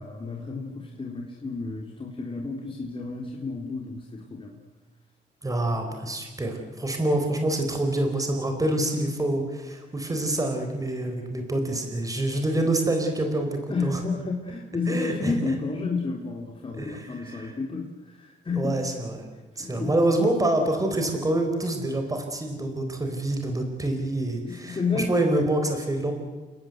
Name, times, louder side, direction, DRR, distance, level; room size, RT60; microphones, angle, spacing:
voice 1, 0.0-4.6 13.7-18.8 19.6-19.9 24.4-25.1, left 4 dB, 30° left, 0 dB, 3.6 m, -31 dB
voice 2, 5.4-13.5 13.8-14.0 14.9-15.5 16.8-17.5 18.6-19.2 19.6-26.1, right 1 dB, 20° right, 4 dB, 4.6 m, -26 dB
29.5 x 18.0 x 8.1 m, 1.3 s
cardioid pair, 100°, 18 cm